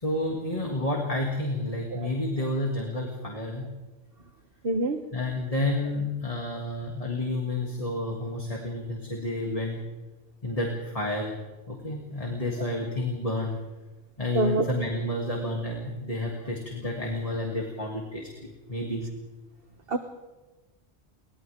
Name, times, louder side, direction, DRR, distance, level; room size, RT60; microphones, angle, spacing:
voice 1, 0.0-3.6 5.1-9.8 10.4-11.4 11.7-13.6 14.2-18.3 18.7-19.0, left 1 dB, 35° left, -1 dB, 3.0 m, -30 dB
voice 2, 4.6-5.0 14.3-14.6 19.9-20.0, right 2 dB, 60° right, 5 dB, 1.4 m, -25 dB
30.0 x 24.5 x 3.7 m, 1.2 s
omnidirectional pair, 1.1 m